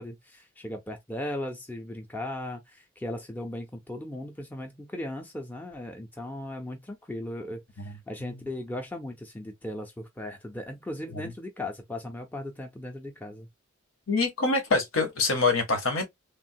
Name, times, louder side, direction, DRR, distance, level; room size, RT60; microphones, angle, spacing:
voice 1, 0.0-13.5, left 1 dB, 10° left, 0.5 m, -37 dB
voice 2, 14.1-16.1, left 3 dB, 80° left, 1.0 m, -26 dB
3.3 x 2.2 x 2.6 m
head